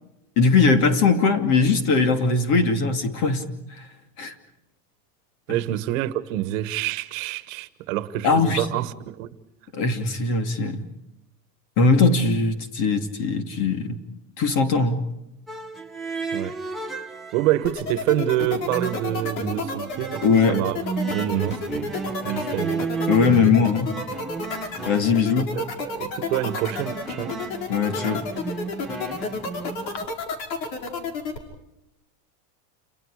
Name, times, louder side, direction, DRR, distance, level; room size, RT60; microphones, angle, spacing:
voice 1, 0.4-3.5 4.2-4.3 5.5-5.6 8.2-8.7 9.7-10.8 11.8-14.0 14.4-15.0 20.2-20.6 23.1-23.9 24.9-25.5 27.7-28.3, left 4 dB, 40° left, 2.6 m, -20 dB
voice 2, 5.5-9.3 16.3-16.6 17.3-20.8 21.1-21.9 22.2-22.9 25.5-27.4, right 13 dB, 50° right, 1.5 m, -27 dB
sound 1, 15.5-17.7 18.1-30.1, right 4 dB, ahead, 1.1 m, -33 dB
sound 2, 17.6-31.4, left 4 dB, 90° left, 5.4 m, -30 dB
29.5 x 29.5 x 5.0 m
supercardioid pair, 175°, 49 cm